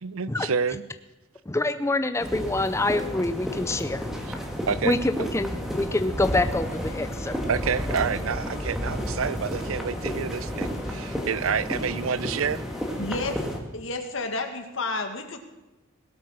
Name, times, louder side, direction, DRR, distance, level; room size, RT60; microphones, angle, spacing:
voice 1, 0.0-0.9 4.3-4.4 4.7-5.3 7.5-12.6, right 6 dB, 85° right, 18 dB, 0.6 m, -28 dB
voice 2, 1.5-4.1 4.8-5.5 5.8-7.4, left 2 dB, 15° left, 10 dB, 0.5 m, -26 dB
sound 1, 2.2-13.6, equal, ahead, 1.8 m, -32 dB
sound 2, 5.9-13.2, left 2 dB, 35° left, 1.1 m, -46 dB
voice 3, 13.0-13.4 13.7-15.4, left 3 dB, 70° left, 6 dB, 1.8 m, -30 dB
18.0 x 8.3 x 6.3 m, 1.1 s
head